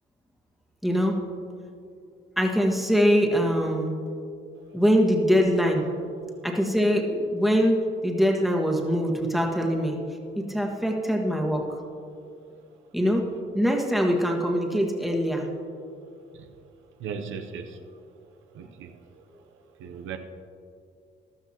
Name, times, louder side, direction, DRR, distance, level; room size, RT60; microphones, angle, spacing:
voice 1, 0.8-1.2 2.4-3.9 4.7-5.9 6.4-10.0 10.3-11.7 12.9-13.2 13.5-15.5, equal, ahead, 0 dB, 1.6 m, -23 dB
voice 2, 17.0-17.8 18.5-18.9 19.8-20.2, right 6 dB, 80° right, 6 dB, 0.8 m, -36 dB
14.0 x 12.0 x 2.9 m, 2.4 s
cardioid pair, 90°, 20 cm